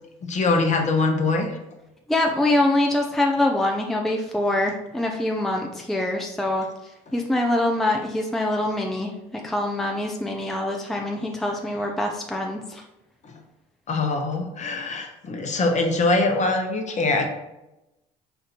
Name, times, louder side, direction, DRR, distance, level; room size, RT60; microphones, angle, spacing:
voice 1, 0.2-1.6 13.2-13.4 13.9-17.2, left 3 dB, 40° left, 3 dB, 0.9 m, -23 dB
voice 2, 2.1-6.7 7.1-9.1 9.4-12.8, left 1 dB, ahead, 1 dB, 0.5 m, -24 dB
4.5 x 2.6 x 4.2 m, 0.95 s
hypercardioid pair, 70°, 19 cm